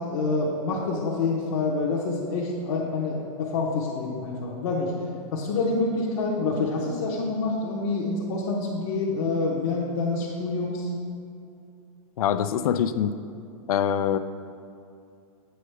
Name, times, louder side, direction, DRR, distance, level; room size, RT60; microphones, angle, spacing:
voice 1, 0.0-4.9 5.3-10.9, left 3 dB, 40° left, -5 dB, 0.8 m, -27 dB
voice 2, 12.2-13.1 13.7-14.2, left 9 dB, 75° left, 12 dB, 0.4 m, -24 dB
7.8 x 6.4 x 3.3 m, 2.5 s
supercardioid pair, 175°, 19 cm